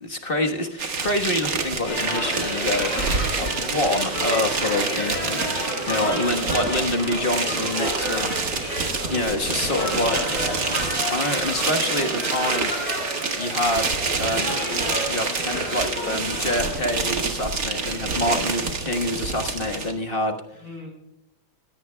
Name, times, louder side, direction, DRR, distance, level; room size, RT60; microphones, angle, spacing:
voice 1, 0.0-2.9 3.4-5.4 5.9-8.3 9.1-10.2 11.1-12.7 13.4-14.5 15.1-20.4, left 1 dB, 30° left, 4 dB, 1.2 m, -26 dB
sound 1, 0.8-19.9, right 4 dB, 45° right, 1.9 m, -27 dB
sound 2, 1.8-17.1, left 1 dB, 60° left, 6.6 m, -31 dB
voice 2, 6.0-6.7 9.8-10.9 20.6-20.9, right 1 dB, 70° right, 0 dB, 6.4 m, -37 dB
22.5 x 17.0 x 2.2 m, 0.81 s
omnidirectional pair, 2.3 m